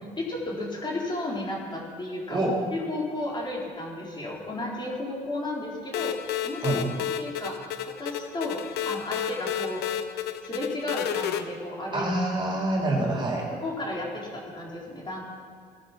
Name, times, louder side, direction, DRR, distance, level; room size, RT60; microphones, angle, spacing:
voice 1, 0.2-6.2 6.4-7.7 8.0-10.0 10.4-12.1 13.6-15.2, left 2 dB, 25° left, -3 dB, 4.1 m, -33 dB
voice 2, 2.3-2.6 6.6-6.9 11.9-13.5, right 2 dB, 25° right, -2 dB, 4.0 m, -26 dB
sound 1, 5.9-11.4, left 10 dB, 75° left, 1.0 m, -31 dB
19.0 x 11.5 x 6.1 m, 2.1 s
cardioid pair, 110°, 17 cm